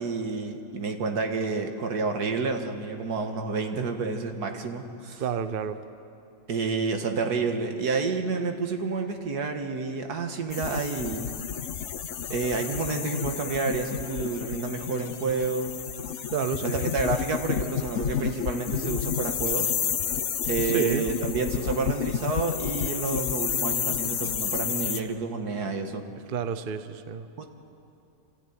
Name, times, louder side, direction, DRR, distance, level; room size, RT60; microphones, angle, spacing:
voice 1, 0.0-5.2 6.5-11.3 12.3-15.7 16.6-19.7 20.4-26.0 27.4-27.5, right 4 dB, 85° right, 5 dB, 2.0 m, -29 dB
voice 2, 5.2-5.8 16.3-16.8 20.7-21.1 26.3-27.3, right 7 dB, 45° right, 11 dB, 0.8 m, -30 dB
sound 1, 10.5-25.0, left 8 dB, 55° left, 1.0 m, -30 dB
27.5 x 13.5 x 9.2 m, 2.7 s
omnidirectional pair, 1.6 m